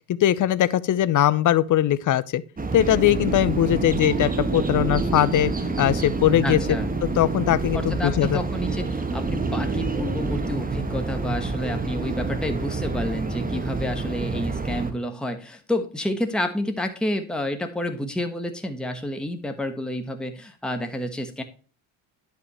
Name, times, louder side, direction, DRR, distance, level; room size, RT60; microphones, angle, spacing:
voice 1, 0.1-2.4 2.7-5.5 5.8-6.6 7.2-8.4, left 12 dB, 40° left, 0.7 m, -20 dB
sound 1, 2.6-14.9, right 3 dB, 15° right, 1.5 m, -27 dB
voice 2, 6.4-6.9 7.7-21.4, left 1 dB, ahead, 1.2 m, -29 dB
10.5 x 5.7 x 3.0 m
hypercardioid pair, 60°, 49 cm